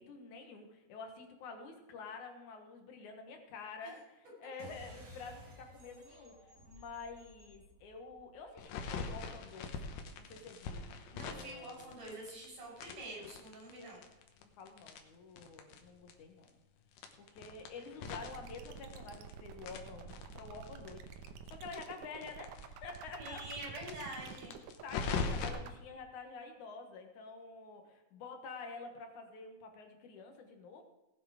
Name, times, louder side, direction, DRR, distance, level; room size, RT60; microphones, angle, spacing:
voice 1, 0.0-9.7 10.3-10.9 11.2-12.1 12.6-12.7 13.7-14.1 14.4-16.5 17.2-22.5 22.8-23.8 24.2-24.3 24.8-30.8, left 4 dB, 70° left, 5 dB, 2.8 m, -49 dB
sound 1, 4.6-9.5, equal, 50° right, 4.0 m, -56 dB
sound 2, 8.6-12.5 12.8-15.8 16.1-16.2 16.4-16.5 16.9-19.3 19.6-22.6 22.9-23.0 23.3-23.4 23.8-25.5, left 5 dB, 90° left, 2.8 m, -41 dB
voice 2, 11.1-14.0 17.1-17.2 23.2-24.5, right 1 dB, 75° right, -2 dB, 7.0 m, -46 dB
sound 3, 18.0-25.8, right 6 dB, 90° right, 2.5 m, -49 dB
18.0 x 7.7 x 5.0 m, 1.1 s
omnidirectional pair, 3.7 m